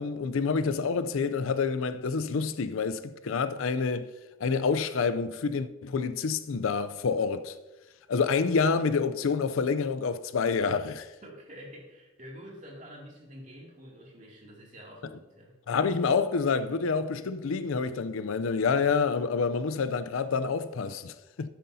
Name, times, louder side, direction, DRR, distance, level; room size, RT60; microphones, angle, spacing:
voice 1, 0.0-4.1 4.4-7.6 8.1-11.1 15.7-21.5, left 5 dB, 75° left, 0.5 m, -28 dB
voice 2, 11.2-15.6, equal, 35° right, 2.4 m, -47 dB
12.5 x 9.3 x 2.7 m
head